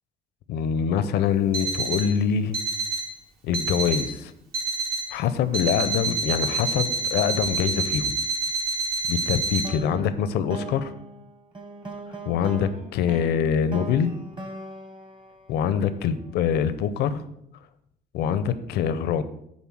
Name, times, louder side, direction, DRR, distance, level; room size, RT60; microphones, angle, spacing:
voice 1, 0.5-2.6 3.4-4.3 5.1-8.1 9.1-10.9 12.3-14.1 15.5-17.2 18.1-19.2, left 8 dB, 75° left, 13 dB, 0.6 m, -24 dB
Alarm, 1.5-2.1 2.5-3.1 3.5-4.1 4.5-5.1 5.5-9.7, right 3 dB, 60° right, 1.6 m, -28 dB
sound 1, 9.6-16.1, right 2 dB, 30° right, 1.2 m, -39 dB
7.2 x 3.9 x 6.2 m, 0.77 s
cardioid pair, 110°, 17 cm